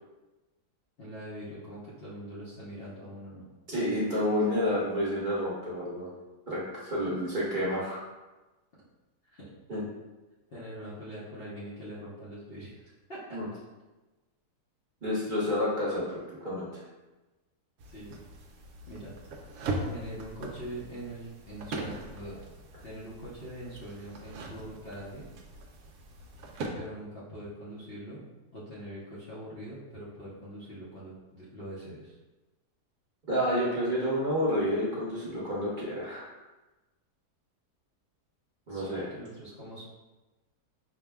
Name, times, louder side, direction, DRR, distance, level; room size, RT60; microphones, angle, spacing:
voice 1, 1.0-3.5 9.2-9.4 9.7-9.8 10.5-13.6 17.9-18.1 18.9-19.1 19.9-22.4 22.8-25.3 26.7-28.2 28.5-32.2 38.7-39.8, right 1 dB, 50° left, -8 dB, 0.8 m, -43 dB
voice 2, 3.7-6.1 6.5-8.0 9.7-9.8 13.3-13.4 15.0-16.0 16.3-16.7 33.3-36.3 38.7-39.0, equal, 35° right, -7 dB, 0.9 m, -29 dB
sound 1, 17.8-26.7, right 2 dB, 70° right, 0.9 m, -40 dB
4.9 x 2.1 x 3.4 m, 1.1 s
omnidirectional pair, 1.7 m